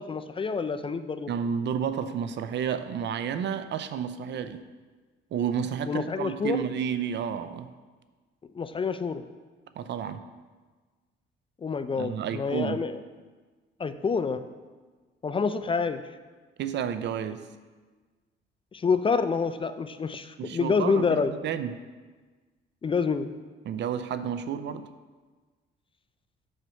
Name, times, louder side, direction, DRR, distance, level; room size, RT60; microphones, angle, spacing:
voice 1, 0.0-1.3 5.9-6.6 8.5-9.2 11.6-13.0 13.8-14.4 15.2-16.0 18.7-21.3 22.8-23.3, left 5 dB, 25° left, 11 dB, 0.4 m, -27 dB
voice 2, 1.3-4.6 5.3-7.7 9.8-10.2 12.0-12.8 16.6-17.5 20.4-21.8 23.6-24.9, right 8 dB, 65° right, 11 dB, 0.5 m, -31 dB
6.4 x 4.4 x 6.2 m, 1.4 s
cardioid pair, 90°, 20 cm